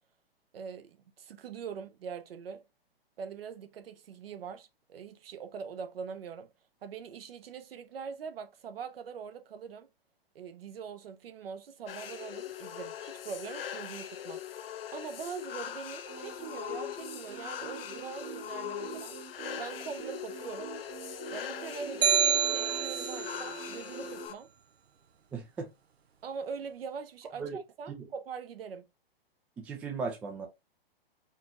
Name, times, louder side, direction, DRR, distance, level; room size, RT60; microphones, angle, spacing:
voice 1, 0.5-2.6 3.2-6.5 6.8-9.9 10.3-14.4 14.9-19.2 19.6-20.7 21.3-24.5 26.2-28.9, right 6 dB, 70° right, 0.9 m, -42 dB
sound 1, 11.9-24.3, left 10 dB, 70° left, 0.6 m, -41 dB
sound 2, 16.0-24.3, right 5 dB, 35° right, 1.0 m, -45 dB
sound 3, 22.0-23.4, right 8 dB, 90° right, 0.5 m, -27 dB
voice 2, 25.3-25.7 27.4-27.6 27.9-28.0 29.6-30.5, right 5 dB, 5° right, 0.3 m, -37 dB
4.3 x 2.9 x 2.4 m
hypercardioid pair, 130°, 30 cm